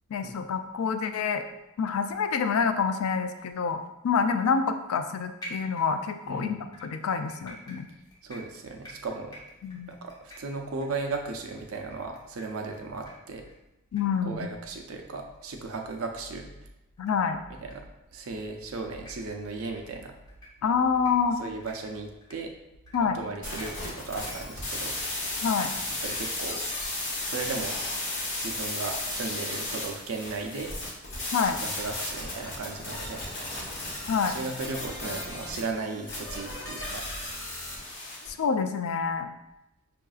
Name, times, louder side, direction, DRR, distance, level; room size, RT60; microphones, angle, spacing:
voice 1, 0.1-1.4 1.8-7.9 9.6-9.9 13.9-14.5 17.0-17.4 20.6-21.4 22.9-23.2 25.4-25.7 31.3-31.6 34.1-34.4 38.3-39.3, left 6 dB, 80° left, 8 dB, 0.4 m, -27 dB
sound 1, 5.4-6.2 6.7-12.8 13.0-13.1 13.4-13.6 14.0-14.1 14.3-14.4 14.9-15.0 15.3-15.4 15.9-16.0 17.0-17.1 17.5-17.7 18.2-18.4 18.9-19.1 19.6-19.8 20.3-20.5 20.9-21.1 21.6-21.7 22.2-22.3 22.9-23.0 23.5-23.7 24.2-24.3 24.8-25.0, equal, 20° left, 0.9 m, -47 dB
voice 2, 6.3-6.6 8.2-9.4 9.9-13.4 14.2-16.5 17.6-17.9 18.1-20.1 21.4-22.5 23.0-24.9 26.0-26.6 27.2-27.8 28.4-30.7 31.4-33.2 34.2-37.0, right 3 dB, 70° right, 3 dB, 0.5 m, -36 dB
sound 2, 23.4-38.3, left 2 dB, 60° left, 1.1 m, -34 dB
5.5 x 2.5 x 2.4 m, 0.93 s
head